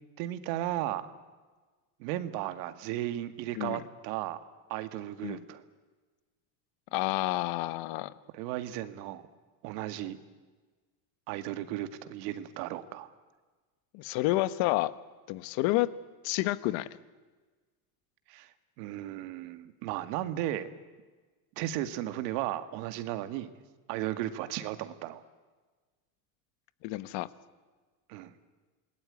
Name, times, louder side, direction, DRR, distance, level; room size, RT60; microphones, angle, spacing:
voice 1, 0.2-1.1 2.0-4.4 4.7-5.6 8.3-9.3 9.6-10.2 11.3-13.1 18.3-18.5 18.8-20.7 21.6-23.5 23.9-25.2 28.1-28.3, right 13 dB, 80° right, 10 dB, 2.1 m, -35 dB
voice 2, 6.9-8.1 13.9-14.9 15.3-15.9 16.2-16.9 26.8-27.3, left 18 dB, 65° left, 15 dB, 1.3 m, -29 dB
27.0 x 20.5 x 9.8 m, 1.3 s
cardioid pair, 135°, 49 cm